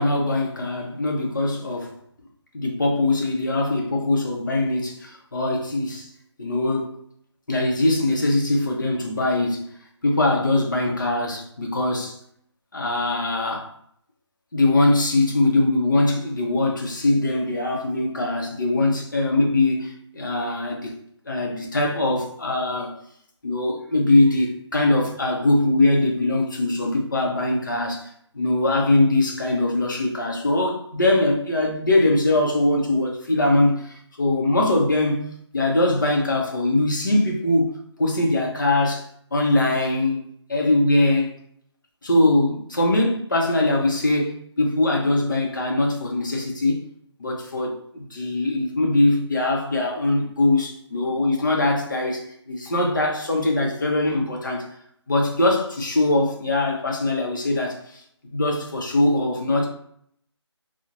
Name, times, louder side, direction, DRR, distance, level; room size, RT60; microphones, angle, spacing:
voice 1, 0.0-1.9 2.5-6.1 6.4-6.9 7.5-9.7 10.0-12.2 12.7-13.7 14.5-21.0 21.2-22.9 23.4-35.3 35.5-37.7 38.0-39.0 39.3-40.2 40.5-41.3 42.0-46.8 47.2-54.7 55.1-58.0 58.3-59.7, left 2 dB, 45° left, 0 dB, 0.6 m, -22 dB
2.4 x 2.0 x 2.8 m, 0.68 s
figure-of-eight pair, 175°, 15 cm